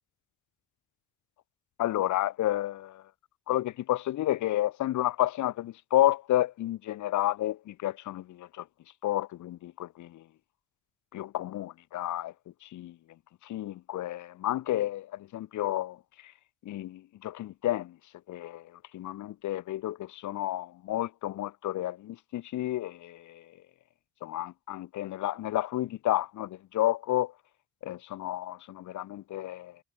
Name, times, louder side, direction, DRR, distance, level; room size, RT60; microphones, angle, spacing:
voice 1, 1.8-3.0 3.5-8.6 9.0-10.2 11.1-12.3 12.6-13.0 13.4-16.0 16.2-16.3 16.6-18.0 18.3-23.5 24.2-27.3 27.8-29.8, left 14 dB, 75° left, 1.2 m, -31 dB
cardioid pair, 90°, 30 cm